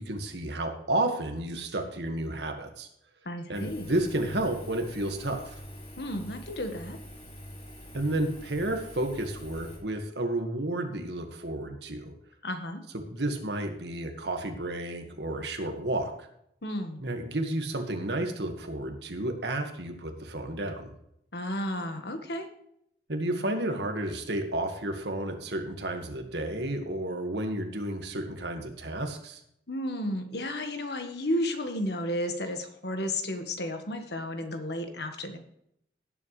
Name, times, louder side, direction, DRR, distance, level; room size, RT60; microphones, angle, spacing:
voice 1, 0.0-2.9 3.5-5.6 7.9-12.1 13.1-16.3 17.0-20.9 23.1-29.4, right 1 dB, 75° right, 5 dB, 1.8 m, -31 dB
voice 2, 3.3-3.9 6.0-7.0 12.4-12.8 16.6-17.0 21.3-22.5 29.7-35.4, left 1 dB, 70° left, 6 dB, 1.6 m, -33 dB
Engine, 3.5-9.8, equal, 40° left, 3.3 m, -45 dB
17.0 x 7.7 x 3.3 m, 0.74 s
head